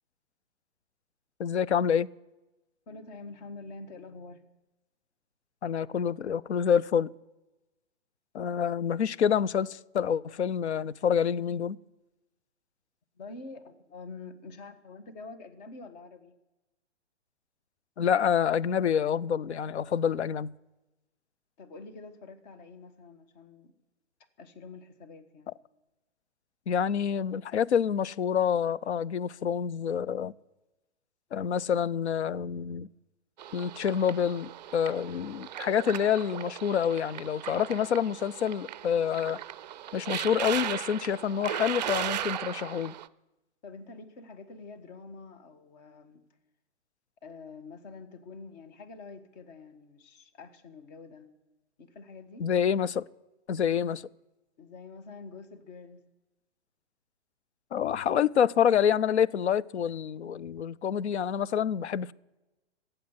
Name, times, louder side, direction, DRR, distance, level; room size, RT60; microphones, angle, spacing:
voice 1, 1.4-2.1 5.6-7.1 8.3-11.8 18.0-20.5 26.7-30.3 31.3-32.9 33.5-39.4 39.9-42.9 52.4-53.1 53.5-54.0 57.7-62.1, left 8 dB, 70° left, 0.6 m, -27 dB
voice 2, 2.9-4.4 13.2-16.3 21.6-23.7 24.4-25.5 43.6-46.2 47.2-51.3 51.8-52.5 54.6-56.0, left 3 dB, 35° left, 1.6 m, -46 dB
sound 1, 33.4-43.1, right 11 dB, 40° right, 0.5 m, -37 dB
15.0 x 7.9 x 9.4 m
figure-of-eight pair, 115°, 35 cm